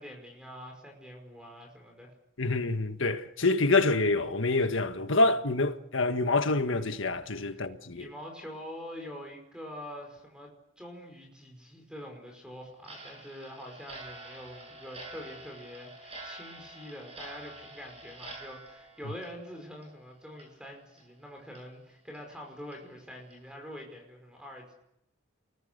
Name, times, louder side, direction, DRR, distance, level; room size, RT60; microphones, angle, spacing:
voice 1, 0.0-2.1 7.5-7.7 8.0-24.8, equal, 5° right, 5.2 m, -45 dB
voice 2, 2.4-8.1, left 2 dB, 70° left, 1.6 m, -26 dB
Clock, 12.8-20.0 20.3-20.5 21.0-21.1 21.5-21.6 22.1-22.2 22.7-22.8 23.3-23.5, right 2 dB, 30° right, 7.6 m, -47 dB
30.0 x 22.0 x 6.8 m
head